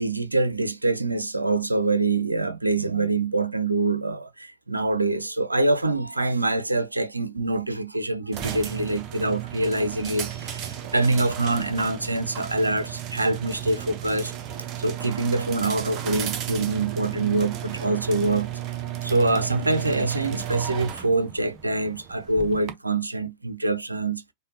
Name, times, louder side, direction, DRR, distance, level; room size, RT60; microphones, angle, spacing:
voice 1, 0.0-14.3 14.8-18.5 19.0-24.2, right 2 dB, 80° right, 0.5 m, -25 dB
sound 1, 8.3-22.7, right 11 dB, 35° right, 0.7 m, -34 dB
5.0 x 2.2 x 2.7 m
figure-of-eight pair, 90°, 0 cm